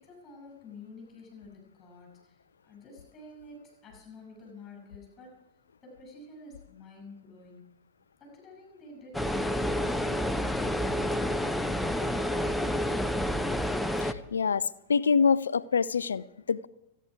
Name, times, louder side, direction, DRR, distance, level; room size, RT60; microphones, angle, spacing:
voice 1, 0.0-2.4 2.6-5.3 5.8-7.6 8.2-9.1 9.7-12.2, left 3 dB, 25° left, 7.0 m, -49 dB
sound 1, 9.1-14.1, left 1 dB, 5° left, 0.7 m, -29 dB
voice 2, 14.0-16.7, left 5 dB, 70° left, 0.5 m, -26 dB
28.5 x 10.0 x 4.8 m
figure-of-eight pair, 90°, 0 cm